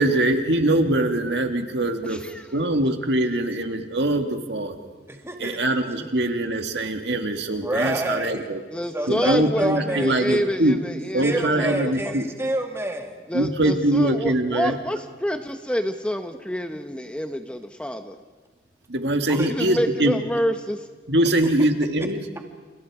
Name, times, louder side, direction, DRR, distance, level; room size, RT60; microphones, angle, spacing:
voice 1, 0.0-2.2 2.5-4.8 5.4-8.6 9.1-10.8 11.1-12.3 13.3-14.8 18.9-20.2 21.1-22.2, right 1 dB, 65° right, 5 dB, 2.0 m, -23 dB
voice 2, 2.0-2.5 8.7-11.7 13.3-18.2 19.5-20.9, equal, 5° left, 6 dB, 0.8 m, -28 dB
voice 3, 5.1-5.6 7.6-10.6 11.2-13.2 16.7-16.8 19.3-19.5, right 1 dB, 15° right, 3 dB, 2.1 m, -29 dB
30.0 x 29.5 x 4.9 m, 1.4 s
head